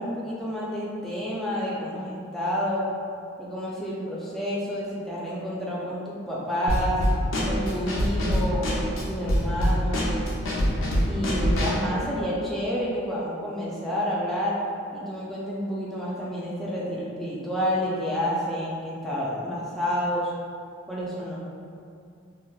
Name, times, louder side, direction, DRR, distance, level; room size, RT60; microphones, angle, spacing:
voice 1, 0.0-2.9 3.4-7.0 7.5-10.2 11.0-14.6 14.9-20.3 20.9-21.4, equal, ahead, -7 dB, 0.3 m, -29 dB
Drum kit / Snare drum, 6.7-11.9, equal, 85° left, 0.4 m, -25 dB
2.8 x 2.0 x 2.3 m, 2.4 s
head